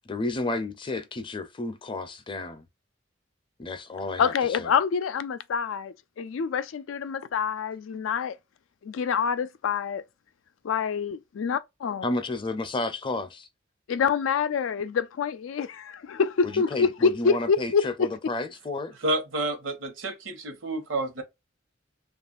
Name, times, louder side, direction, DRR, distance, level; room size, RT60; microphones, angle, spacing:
voice 1, 0.1-2.7 3.6-4.7 12.0-13.5 16.4-18.9, left 2 dB, 25° left, 0.5 m, -32 dB
voice 2, 4.2-8.3 8.8-10.0 10.6-12.1 13.9-18.1, left 6 dB, 90° left, 0.4 m, -26 dB
voice 3, 19.0-21.2, right 2 dB, 85° right, 1.0 m, -29 dB
2.9 x 2.4 x 2.4 m
head